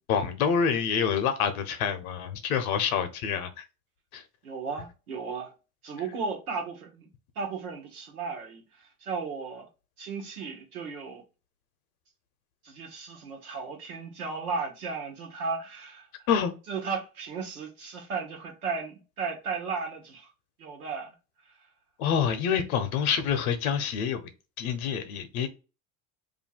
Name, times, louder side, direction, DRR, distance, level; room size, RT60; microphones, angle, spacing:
voice 1, 0.1-3.6 4.1-4.2 16.3-16.5 22.0-24.3 24.6-25.5, left 7 dB, 75° left, 1.0 m, -27 dB
voice 2, 4.4-5.5 5.8-7.1 7.3-9.7 10.0-11.2 12.6-16.1 16.7-20.3 20.6-21.1, right 5 dB, 90° right, 1.3 m, -35 dB
2.8 x 2.6 x 4.3 m
hypercardioid pair, 75°, 43 cm